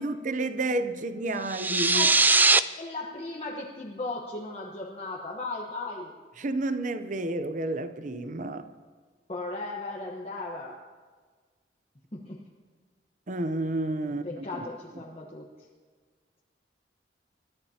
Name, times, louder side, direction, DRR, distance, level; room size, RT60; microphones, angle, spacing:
voice 1, 0.0-2.1 6.4-8.7 13.3-14.5, right 2 dB, 45° right, 0.7 m, -30 dB
sound 1, 1.5-2.6, right 3 dB, 10° right, 0.3 m, -20 dB
voice 2, 2.8-6.1 9.3-10.8 12.1-12.4 14.0-15.5, left 2 dB, 35° left, 1.2 m, -36 dB
28.5 x 14.0 x 2.9 m
head